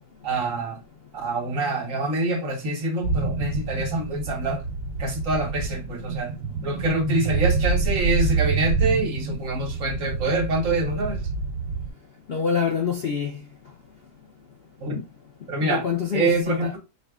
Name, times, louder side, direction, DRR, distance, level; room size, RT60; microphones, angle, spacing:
voice 1, 0.2-0.8 1.1-4.6 5.0-6.3 6.6-11.2 14.8-15.0 15.5-15.8 16.1-16.8, right 2 dB, 55° right, 1.4 m, -25 dB
sound 1, 3.0-11.9, right 4 dB, 80° right, 1.4 m, -27 dB
voice 2, 12.3-13.4 15.6-16.7, left 6 dB, 55° left, 0.7 m, -26 dB
4.7 x 2.4 x 3.5 m
omnidirectional pair, 1.7 m